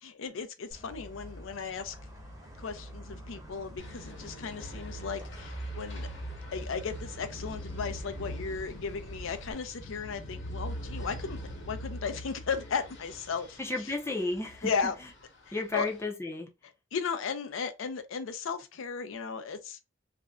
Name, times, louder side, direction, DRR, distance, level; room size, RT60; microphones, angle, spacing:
voice 1, 0.0-2.0 2.6-6.1 6.5-11.4 11.6-13.6 13.8-13.9 14.6-14.9 15.5-15.9 16.9-19.8, left 5 dB, 80° left, 0.5 m, -35 dB
sound 1, 0.7-9.5, right 1 dB, 15° right, 0.8 m, -45 dB
sound 2, 3.8-16.0, equal, 65° left, 1.0 m, -43 dB
voice 2, 13.6-14.9 15.5-16.5, left 2 dB, 15° left, 0.5 m, -33 dB
2.5 x 2.1 x 3.5 m
head